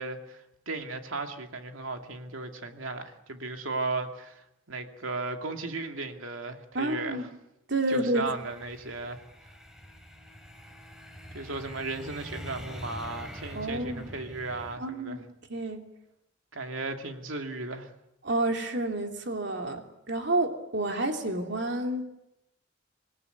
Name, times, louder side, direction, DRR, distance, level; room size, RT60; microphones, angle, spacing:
voice 1, 0.0-7.3 7.9-9.2 11.3-15.2 16.5-17.9, right 3 dB, 85° right, 5 dB, 2.6 m, -36 dB
voice 2, 6.7-7.3 7.7-8.2 13.5-14.0 14.8-15.2 15.5-15.8 18.2-22.0, right 2 dB, 60° right, 4 dB, 3.0 m, -29 dB
sound 1, 8.2-14.8, equal, 5° right, 3.4 m, -45 dB
26.5 x 18.0 x 9.4 m, 0.88 s
head